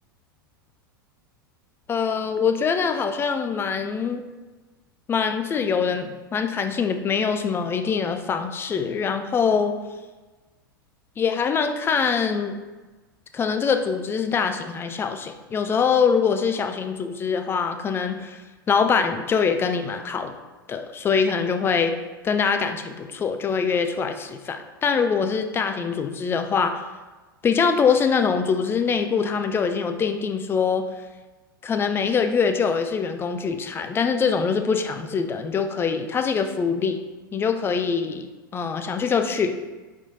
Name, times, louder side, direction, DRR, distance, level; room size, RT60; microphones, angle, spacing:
voice 1, 1.9-4.2 5.1-9.8 11.2-12.6 13.3-18.4 18.7-20.3 20.7-21.9 22.2-26.8 27.4-30.8 31.6-37.0 37.3-39.6, left 6 dB, 20° left, 7 dB, 0.4 m, -23 dB
4.3 x 4.2 x 2.7 m, 1.2 s
figure-of-eight pair, 90°, 12 cm